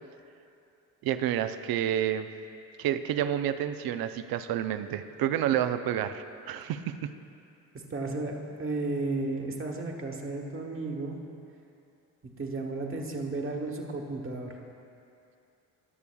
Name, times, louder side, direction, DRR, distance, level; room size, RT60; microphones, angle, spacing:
voice 1, 1.0-2.3 2.8-7.1, right 10 dB, 65° right, 11 dB, 0.6 m, -29 dB
voice 2, 7.9-11.2 12.4-14.5, right 2 dB, 30° right, 1 dB, 1.4 m, -33 dB
19.5 x 6.9 x 2.3 m, 2.6 s
supercardioid pair, 60°, 39 cm